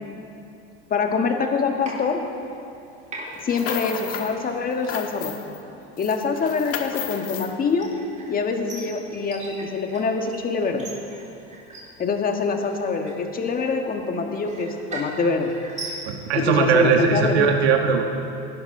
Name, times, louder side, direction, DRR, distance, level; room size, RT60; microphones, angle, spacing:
voice 1, 0.9-2.2 3.4-5.3 6.0-7.9 8.3-10.9 12.0-15.5 16.3-17.4, left 4 dB, 25° left, 4 dB, 1.6 m, -25 dB
sound 1, 1.8-2.8 3.1-16.4, right 2 dB, 20° right, 3.5 m, -40 dB
sound 2, 3.3-4.3 4.7-5.6 6.0-7.5, left 9 dB, 45° left, 1.4 m, -33 dB
voice 2, 16.1-18.1, right 5 dB, 80° right, 3 dB, 1.4 m, -19 dB
19.0 x 11.5 x 3.8 m, 2.6 s
supercardioid pair, 110°, 32 cm